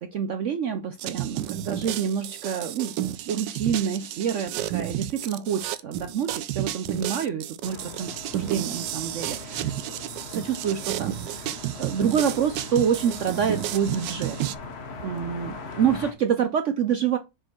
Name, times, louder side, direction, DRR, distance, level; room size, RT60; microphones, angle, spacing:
voice 1, 0.1-2.9 3.3-10.0 10.3-14.4 15.0-17.2, right 8 dB, 70° right, 0.7 m, -27 dB
sound 1, 1.0-14.5, right 13 dB, 90° right, 1.3 m, -32 dB
sound 2, 7.6-16.1, left 4 dB, 45° left, 1.1 m, -40 dB
6.5 x 4.7 x 4.4 m
omnidirectional pair, 1.9 m